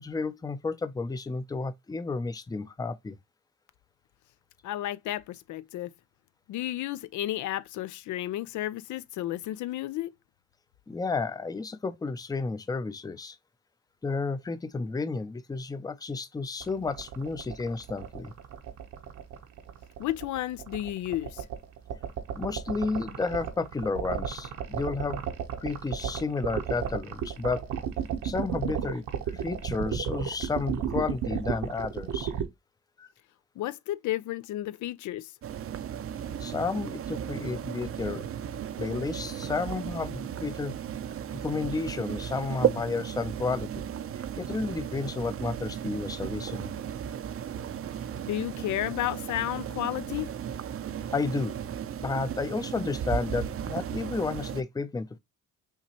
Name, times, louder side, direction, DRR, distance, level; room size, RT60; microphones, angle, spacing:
voice 1, 0.0-3.2 10.9-13.4 14.0-18.3 22.4-25.2 25.6-27.7 28.2-32.3 33.0-33.1 36.4-38.3 38.8-40.8 41.3-43.9 44.4-46.8 51.1-51.5 52.0-55.2, left 4 dB, 15° left, 0.5 m, -32 dB
voice 2, 4.6-5.9 6.5-10.1 20.0-21.4 33.6-35.3 48.3-50.3, left 14 dB, 75° left, 0.5 m, -32 dB
sound 1, 16.6-32.4, right 9 dB, 75° right, 1.0 m, -33 dB
sound 2, 35.4-54.6, right 9 dB, 50° right, 0.6 m, -35 dB
5.7 x 3.0 x 2.8 m
cardioid pair, 90°, 30 cm